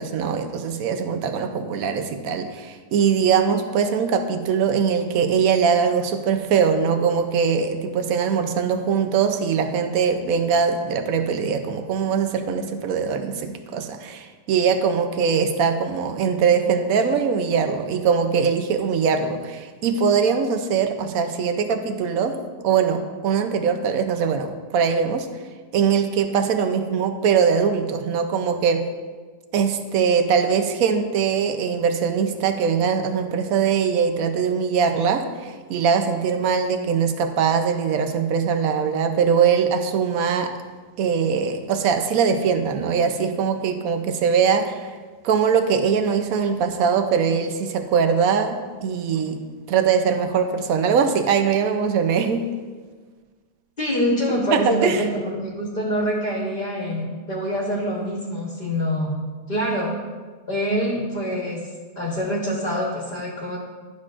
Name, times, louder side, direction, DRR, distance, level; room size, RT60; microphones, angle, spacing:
voice 1, 0.0-22.4 22.6-25.3 25.7-28.8 29.5-40.5 41.0-44.9 45.2-49.4 49.7-52.5 54.5-55.0, right 6 dB, 70° right, 7 dB, 0.9 m, -21 dB
voice 2, 53.8-59.1 59.5-59.9 60.5-61.6 61.9-63.6, equal, 35° left, -4 dB, 1.1 m, -25 dB
11.0 x 6.2 x 2.5 m, 1.4 s
omnidirectional pair, 1.8 m